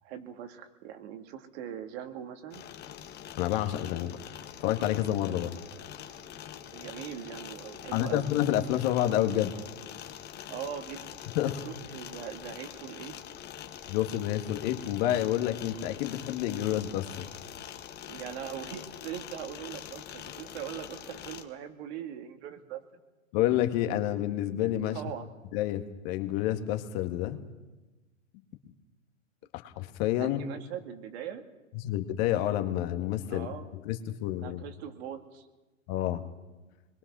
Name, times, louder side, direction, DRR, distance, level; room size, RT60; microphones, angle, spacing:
voice 1, 0.0-2.6 6.7-8.3 10.5-11.1 11.6-13.1 18.1-22.8 24.9-25.3 30.2-31.4 33.3-33.7 34.4-35.5, right 9 dB, 50° right, 6 dB, 2.5 m, -41 dB
sound 1, 2.5-21.4, left 10 dB, 25° left, 1.6 m, -44 dB
voice 2, 3.4-4.2 4.6-5.5 7.9-9.5 11.4-11.7 13.9-17.3 23.3-25.0 25.5-27.4 28.3-28.4 29.5-30.4 31.8-33.5 33.9-34.6 35.9-36.2, left 12 dB, 45° left, 6 dB, 1.9 m, -29 dB
25.5 x 21.5 x 6.2 m, 1.1 s
hypercardioid pair, 115°, 39 cm